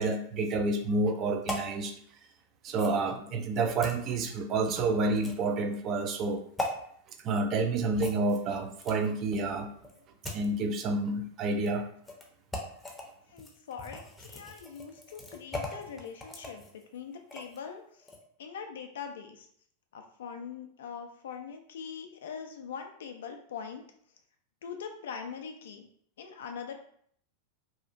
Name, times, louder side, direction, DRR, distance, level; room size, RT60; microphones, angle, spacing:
voice 1, 0.0-1.9 2.6-6.4 7.2-9.7 10.3-11.9, right 3 dB, 40° right, 6 dB, 0.4 m, -29 dB
sound 1, 1.5-1.7 2.7-3.0 3.8-4.0 5.2-5.5 6.6-6.7 8.0-9.2 9.8-10.5 11.5-11.7 12.1-12.2 12.5-13.0 13.4-17.6 18.0-18.2, left 1 dB, 10° left, 0.6 m, -39 dB
voice 2, 13.3-16.7 16.9-17.8 18.4-19.5 19.9-23.8 24.6-25.9 26.2-26.7, left 6 dB, 70° left, 5 dB, 0.3 m, -42 dB
2.8 x 2.4 x 2.4 m, 0.63 s
hypercardioid pair, 95°, 0 cm